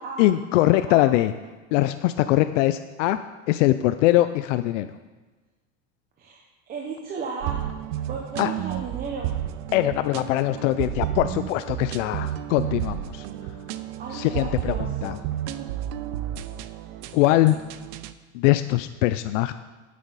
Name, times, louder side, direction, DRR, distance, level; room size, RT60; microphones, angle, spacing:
voice 1, 0.2-1.3 1.7-3.2 3.5-4.9 8.4-8.5 9.7-13.2 14.1-15.2 17.1-17.6 18.3-19.5, left 15 dB, 85° left, 12 dB, 0.5 m, -22 dB
voice 2, 6.7-7.6 8.1-9.3 14.0-15.2 15.5-15.7 16.8-17.0, right 4 dB, 25° right, -1 dB, 0.9 m, -35 dB
sound 1, 7.4-18.1, right 12 dB, 55° right, 0.5 m, -32 dB
9.5 x 8.4 x 4.0 m, 1.2 s
supercardioid pair, 155°, 37 cm